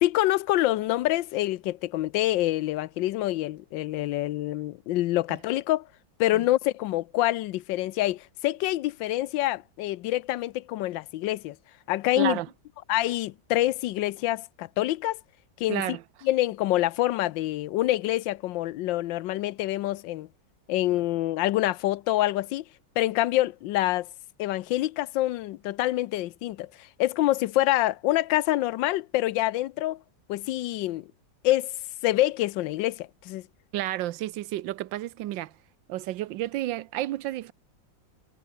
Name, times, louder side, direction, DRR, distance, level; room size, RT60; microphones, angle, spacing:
voice 1, 0.0-5.9 6.2-11.6 11.9-12.4 12.9-15.2 15.6-15.8 16.2-20.3 20.7-22.6 23.0-24.1 24.4-30.0 30.3-31.1 31.4-31.7 32.0-33.4, left 15 dB, 85° left, 1.4 m, -26 dB
voice 2, 12.2-12.5 15.7-16.0 33.7-35.6 35.9-37.5, right 14 dB, 85° right, 1.4 m, -31 dB
omnidirectional pair, 2.0 m